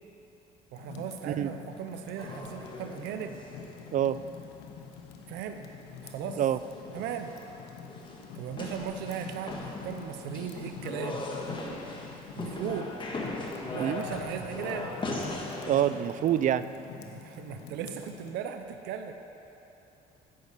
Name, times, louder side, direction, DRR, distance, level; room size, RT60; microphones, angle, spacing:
Fire, 0.7-18.3, left 6 dB, 90° left, 1.0 m, -46 dB
voice 1, 0.7-3.4 5.3-5.6 6.0-6.4 6.9-7.3 8.3-11.2 12.4-12.9 13.7-14.9 17.0-19.1, right 8 dB, 85° right, 7 dB, 0.7 m, -37 dB
sound 1, 2.2-4.7 5.0-5.1 5.3-5.7 5.9-6.0 6.4-15.8, left 2 dB, 30° left, 1.8 m, -39 dB
voice 2, 15.7-16.7, right 10 dB, 50° right, 14 dB, 0.4 m, -26 dB
10.0 x 9.7 x 6.7 m, 3.0 s
cardioid pair, 110°, 17 cm